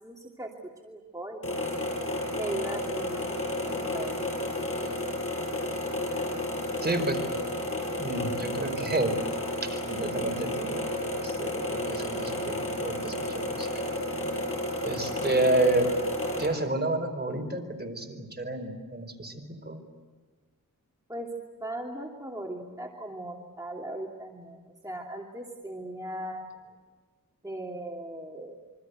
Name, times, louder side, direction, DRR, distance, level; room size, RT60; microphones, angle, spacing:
voice 1, 0.0-1.6 2.3-4.2 21.1-21.3 21.6-26.5 27.4-28.6, right 1 dB, 10° right, -1 dB, 2.7 m, -38 dB
sound 1, 1.4-16.5, left 1 dB, 40° left, 6.5 m, -32 dB
voice 2, 6.8-7.4 8.0-9.2 9.6-13.8 14.8-15.9 16.4-19.3 19.6-19.8, right 2 dB, 30° right, 4 dB, 4.7 m, -30 dB
27.0 x 25.0 x 8.1 m, 1.4 s
wide cardioid pair, 90°, 33 cm